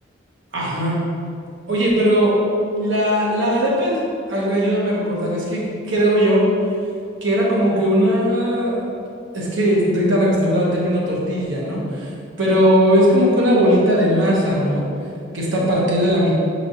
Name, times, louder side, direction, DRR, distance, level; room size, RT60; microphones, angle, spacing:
voice 1, 0.5-1.0 1.7-2.3 2.7-4.0 4.3-5.6 5.9-6.4 7.2-8.8 9.3-12.1 12.4-14.9 15.3-16.3, equal, 70° right, -5 dB, 0.9 m, -18 dB
4.8 x 3.0 x 2.7 m, 2.3 s
head